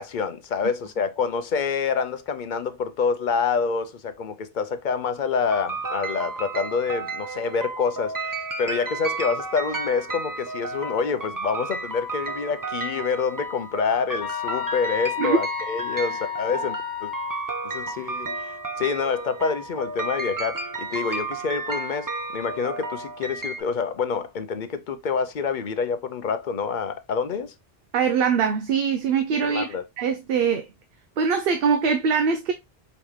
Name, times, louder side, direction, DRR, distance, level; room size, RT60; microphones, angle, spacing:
voice 1, 0.0-17.1 17.6-27.5 29.4-29.8, left 5 dB, 55° left, 0.7 m, -27 dB
sound 1, 5.5-23.6, right 3 dB, 25° right, 0.5 m, -32 dB
sound 2, 14.2-17.5, left 13 dB, 85° left, 1.0 m, -32 dB
voice 2, 27.9-30.7 31.2-32.5, right 6 dB, 65° right, 0.8 m, -22 dB
5.2 x 3.0 x 3.1 m
omnidirectional pair, 1.1 m